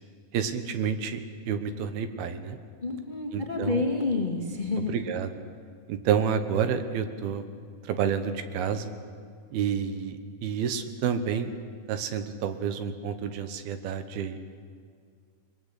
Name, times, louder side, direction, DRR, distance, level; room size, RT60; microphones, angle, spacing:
voice 1, 0.3-2.6 3.3-3.8 4.9-5.3 5.9-7.4 7.8-8.9 9.5-11.5 11.9-14.4, right 7 dB, 80° right, 9 dB, 3.0 m, -29 dB
voice 2, 2.8-4.9, left 3 dB, 20° left, 0 dB, 1.3 m, -29 dB
23.0 x 21.5 x 8.2 m, 2.1 s
omnidirectional pair, 4.4 m